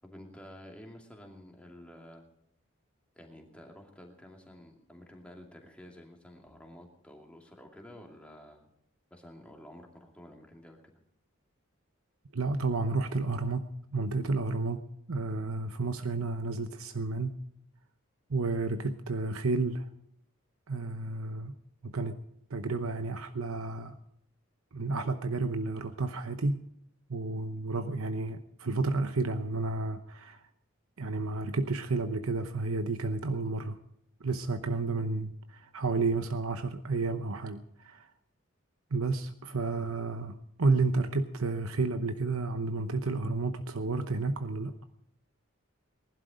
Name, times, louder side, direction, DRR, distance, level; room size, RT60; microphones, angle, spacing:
voice 1, 0.0-2.2 3.1-8.7 9.1-10.9, left 1 dB, 5° left, 1 dB, 2.5 m, -51 dB
voice 2, 12.3-17.4 18.3-19.9 20.7-21.5 21.8-22.2 22.5-24.0 24.7-26.6 27.1-30.4 31.0-33.8 34.2-38.1 38.9-44.7, right 3 dB, 85° right, 8 dB, 0.9 m, -31 dB
20.0 x 11.5 x 5.1 m, 0.74 s
head